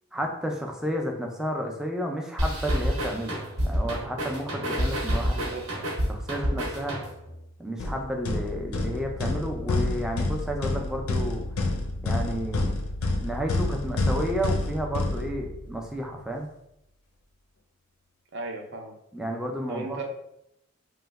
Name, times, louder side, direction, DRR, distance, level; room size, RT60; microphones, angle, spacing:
voice 1, 0.1-3.4 3.6-5.5 6.1-7.0 7.6-11.5 12.0-12.7 13.2-16.5 19.1-20.0, equal, 5° right, 1 dB, 0.3 m, -31 dB
sound 1, 2.4-7.3, equal, 90° right, 1.0 m, -28 dB
voice 2, 5.3-5.7 18.3-18.9 19.7-20.0, right 2 dB, 55° right, 2 dB, 0.5 m, -36 dB
sound 2, 7.8-15.8, left 2 dB, 90° left, 0.5 m, -29 dB
3.0 x 2.1 x 3.4 m, 0.80 s
head